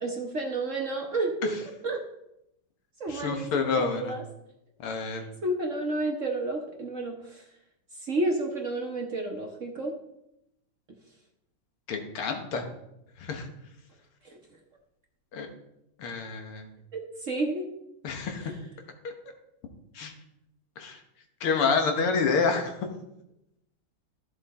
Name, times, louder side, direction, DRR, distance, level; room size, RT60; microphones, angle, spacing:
voice 1, 0.0-1.5 1.8-2.0 3.0-4.2 5.4-7.4 7.9-9.9 14.2-14.4 16.9-17.7 18.4-18.6, right 2 dB, 45° right, 1 dB, 1.1 m, -31 dB
voice 2, 3.1-4.2 4.8-5.2 11.9-12.7 13.2-13.5 15.3-15.5 16.0-16.7 18.0-18.5 19.9-20.1 20.8-21.0 21.4-22.9, left 5 dB, 80° left, 4 dB, 2.2 m, -28 dB
13.5 x 6.5 x 4.2 m, 0.85 s
omnidirectional pair, 2.4 m